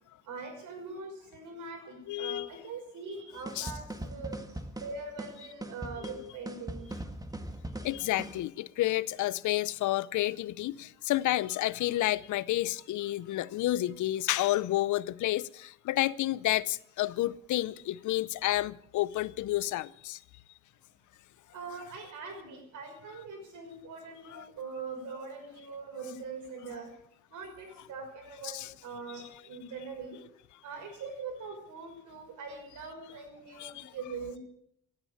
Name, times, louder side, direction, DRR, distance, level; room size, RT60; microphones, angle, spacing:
voice 1, 0.2-4.4 4.8-6.9 21.5-26.9 27.3-30.2 30.6-34.4, right 4 dB, 80° right, 5.8 m, -42 dB
voice 2, 2.1-2.6 3.6-3.7 6.0-6.3 7.8-20.2 24.3-24.5 28.4-28.7 33.6-33.9, left 15 dB, 75° left, 0.7 m, -30 dB
sound 1, 3.5-8.4, right 1 dB, 10° right, 1.9 m, -40 dB
16.5 x 9.9 x 8.7 m
cardioid pair, 90°, 30 cm